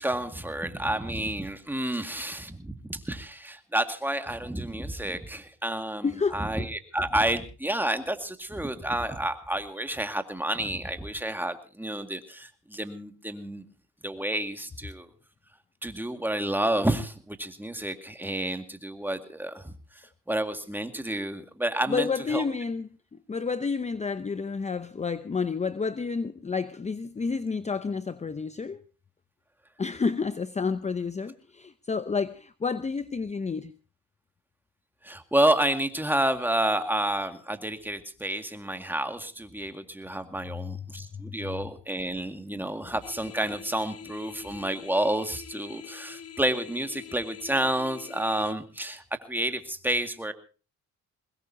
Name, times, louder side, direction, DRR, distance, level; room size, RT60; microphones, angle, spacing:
voice 1, 0.0-13.6 14.0-15.1 15.8-22.4 35.0-50.3, right 1 dB, 5° right, 2.1 m, -30 dB
voice 2, 6.0-6.4 21.9-28.8 29.8-33.7 40.6-41.6 42.5-42.9, left 5 dB, 25° left, 0.8 m, -30 dB
sound 1, 43.0-48.5, left 9 dB, 50° left, 1.2 m, -45 dB
22.0 x 20.5 x 2.8 m
cardioid pair, 90°, 30 cm